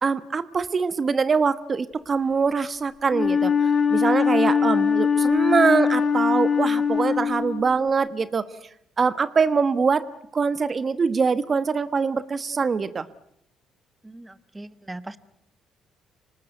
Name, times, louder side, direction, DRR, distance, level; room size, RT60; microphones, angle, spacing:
voice 1, 0.0-3.5 3.9-8.4 9.0-10.0 10.3-13.1, right 5 dB, 40° right, 14 dB, 1.2 m, -23 dB
Wind instrument woodwind instrument, 3.1-7.8, left 6 dB, 45° left, 4.3 m, -22 dB
voice 2, 14.0-15.2, right 2 dB, 15° right, 14 dB, 1.2 m, -39 dB
26.0 x 19.0 x 9.2 m, 0.74 s
supercardioid pair, 70°, 0 cm